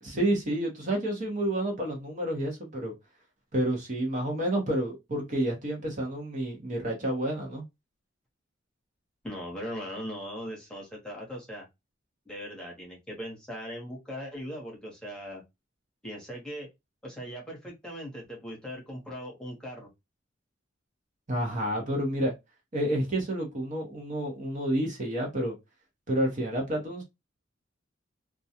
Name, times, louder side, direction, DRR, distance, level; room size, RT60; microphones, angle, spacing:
voice 1, 0.0-2.9 3.5-7.6 21.3-22.3 22.7-25.5 26.1-27.0, right 1 dB, 40° right, 0.8 m, -29 dB
voice 2, 9.2-11.7 12.2-15.4 16.0-16.7 17.0-19.9, equal, 5° left, 1.0 m, -39 dB
2.3 x 2.3 x 2.7 m
head